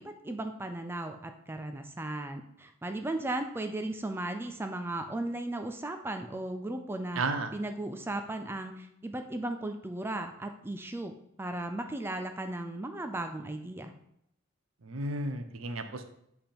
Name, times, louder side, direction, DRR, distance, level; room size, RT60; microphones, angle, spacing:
voice 1, 0.0-7.2 7.5-13.9, right 1 dB, 10° right, 6 dB, 0.4 m, -36 dB
voice 2, 7.2-7.5 14.8-16.0, right 2 dB, 80° right, 8 dB, 0.7 m, -33 dB
7.7 x 3.5 x 4.3 m, 0.74 s
head